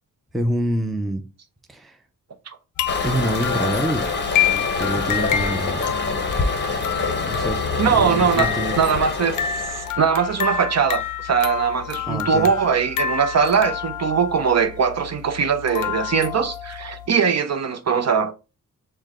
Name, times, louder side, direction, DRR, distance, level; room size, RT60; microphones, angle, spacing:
voice 1, 0.3-1.3 1.7-2.0 3.0-4.1 4.8-5.8 7.3-8.8 12.1-12.5, right 1 dB, ahead, 0.5 m, -26 dB
sound 1, 2.8-17.1, left 9 dB, 60° left, 0.5 m, -28 dB
Toilet flush, 2.9-9.9, left 3 dB, 30° left, 0.8 m, -26 dB
voice 2, 7.8-8.5 8.8-18.3, right 6 dB, 50° right, 0.6 m, -21 dB
6.4 x 2.2 x 3.6 m
wide cardioid pair, 130°, 35 cm